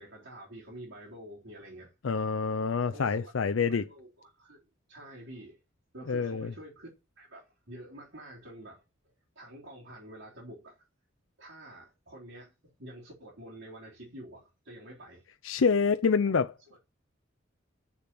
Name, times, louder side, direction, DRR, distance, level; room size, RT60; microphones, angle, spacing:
voice 1, 0.0-1.9 2.8-3.3 3.7-4.6 4.9-5.6 5.9-6.9 7.2-8.8 9.4-10.8 11.4-12.5 12.8-15.2 16.3-16.4 16.7-16.8, right 1 dB, 65° right, 3.8 m, -48 dB
voice 2, 2.0-3.9 6.1-6.5 15.4-16.5, left 5 dB, 70° left, 0.5 m, -26 dB
7.3 x 6.9 x 7.7 m
head